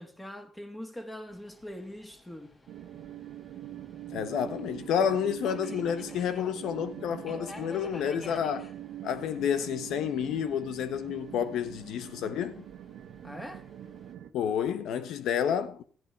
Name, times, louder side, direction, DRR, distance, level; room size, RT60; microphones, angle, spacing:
voice 1, 0.0-2.5 13.2-13.6, equal, 15° left, 2.8 m, -42 dB
Subway metro underground, 1.3-14.1, left 2 dB, 30° left, 4.3 m, -52 dB
sound 1, 2.7-14.3, right 12 dB, 80° right, 1.4 m, -44 dB
voice 2, 4.1-8.7 9.0-12.6 14.3-15.8, left 8 dB, 80° left, 1.3 m, -30 dB
15.0 x 10.5 x 4.7 m
cardioid pair, 90°, 0 cm